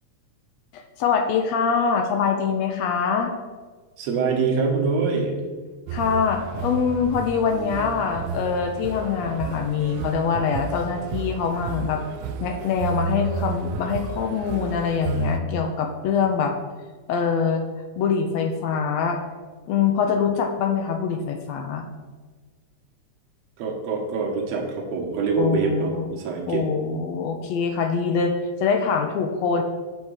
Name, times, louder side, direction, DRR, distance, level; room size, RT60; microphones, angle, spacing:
voice 1, 0.7-3.3 5.9-12.0 12.4-16.5 17.1-17.6 18.0-19.2 19.7-21.8 25.4-26.1 26.5-29.6, left 6 dB, 80° left, 5 dB, 1.6 m, -24 dB
voice 2, 4.0-5.3 20.0-20.1 23.6-26.7, right 4 dB, 65° right, 1 dB, 2.2 m, -25 dB
sound 1, 5.9-15.4, right 5 dB, 85° right, 2.0 m, -32 dB
7.9 x 4.3 x 6.4 m, 1.4 s
omnidirectional pair, 3.6 m